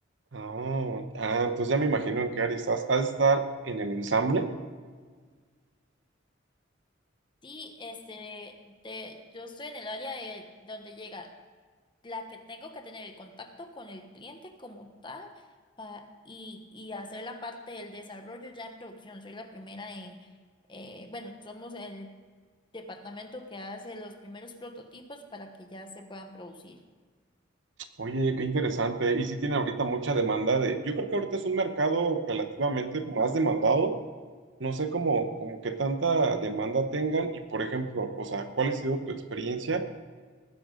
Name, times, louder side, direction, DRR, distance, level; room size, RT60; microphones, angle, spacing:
voice 1, 0.3-4.5 28.0-33.9 34.6-39.8, right 3 dB, 65° right, 8 dB, 1.0 m, -28 dB
voice 2, 7.4-11.3 12.0-15.4 15.8-20.3 20.7-22.1 22.7-26.8, left 2 dB, 25° left, 5 dB, 1.2 m, -42 dB
19.0 x 10.0 x 3.9 m, 1.5 s
head